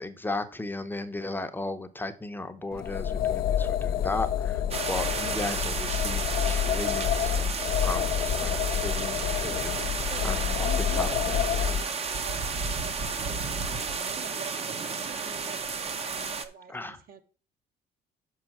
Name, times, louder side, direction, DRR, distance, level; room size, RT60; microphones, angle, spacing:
voice 1, 0.0-7.5 7.8-11.4 16.7-17.0, left 2 dB, 10° left, 8 dB, 0.8 m, -36 dB
sound 1, 2.7-11.8, left 9 dB, 65° left, 0.6 m, -28 dB
sound 2, 4.7-16.5, right 5 dB, 35° right, 0.9 m, -32 dB
voice 2, 9.2-9.6 10.0-10.3 10.6-12.5 12.8-15.7 16.2-17.2, right 7 dB, 60° right, 6 dB, 1.5 m, -45 dB
6.5 x 5.3 x 5.9 m, 0.40 s
cardioid pair, 110°, 17 cm